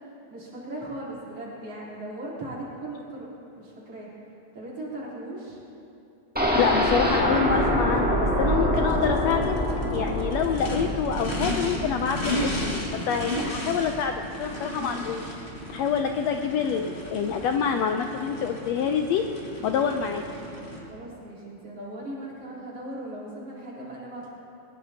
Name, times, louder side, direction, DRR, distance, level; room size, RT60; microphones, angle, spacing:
voice 1, 0.3-3.3 3.6-4.1 4.5-5.6 20.8-24.3, right 1 dB, 50° right, -7 dB, 4.7 m, -38 dB
sound 1, 6.4-14.2 14.6-14.7 15.0-15.1, equal, 5° right, 1.2 m, -26 dB
voice 2, 6.5-9.6 9.9-15.3 15.7-19.2 19.6-20.2, left 7 dB, 75° left, 5 dB, 1.6 m, -27 dB
Race car auto racing / Idling / Accelerating revving vroom, 8.8-20.8, left 1 dB, 25° left, 1.9 m, -34 dB
22.0 x 19.5 x 2.9 m, 2.9 s
omnidirectional pair, 3.5 m